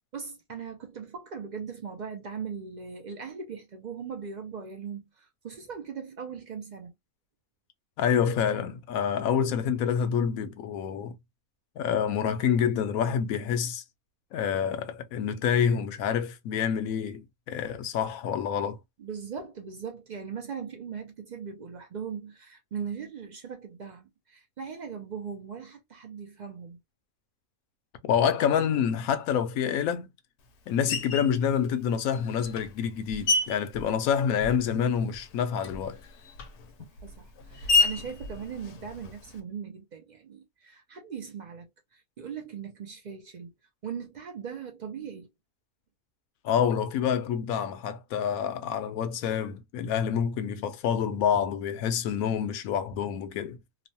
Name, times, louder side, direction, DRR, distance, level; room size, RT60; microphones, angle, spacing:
voice 1, 0.1-6.9 19.0-26.8 30.8-30.9 37.0-41.7 41.9-43.5 43.8-45.3, right 6 dB, 80° right, 0.4 m, -39 dB
voice 2, 8.0-11.1 11.8-13.8 14.3-18.8 28.0-30.1 30.7-36.0 46.4-53.6, left 8 dB, 85° left, 1.0 m, -27 dB
Screech, 30.9-31.4 32.1-34.8 35.1-39.4, left 3 dB, 60° left, 0.8 m, -30 dB
3.0 x 2.0 x 2.6 m
omnidirectional pair, 1.5 m